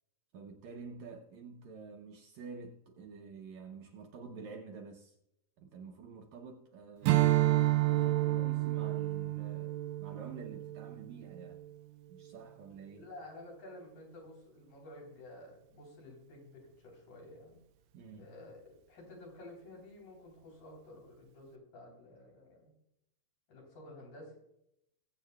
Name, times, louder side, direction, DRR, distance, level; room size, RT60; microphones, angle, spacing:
voice 1, 0.3-5.2 5.6-11.6 12.1-13.1 17.9-18.3, right 5 dB, 75° right, 1.8 m, -49 dB
Strum, 7.0-11.7, right 16 dB, 90° right, 2.3 m, -30 dB
voice 2, 12.9-17.6 18.2-22.7 23.5-24.4, left 1 dB, 75° left, 5.2 m, -52 dB
22.0 x 8.1 x 2.3 m
omnidirectional pair, 3.9 m